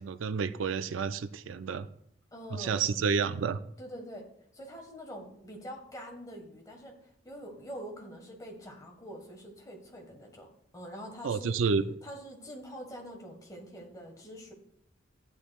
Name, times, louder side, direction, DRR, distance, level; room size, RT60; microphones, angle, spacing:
voice 1, 0.0-1.9 2.5-3.6 11.2-11.8, right 5 dB, 75° right, 0.4 m, -30 dB
voice 2, 2.3-2.8 3.8-4.3 4.5-10.5 10.7-11.6 12.0-14.5, equal, 20° left, 1.5 m, -45 dB
12.0 x 8.8 x 2.4 m
head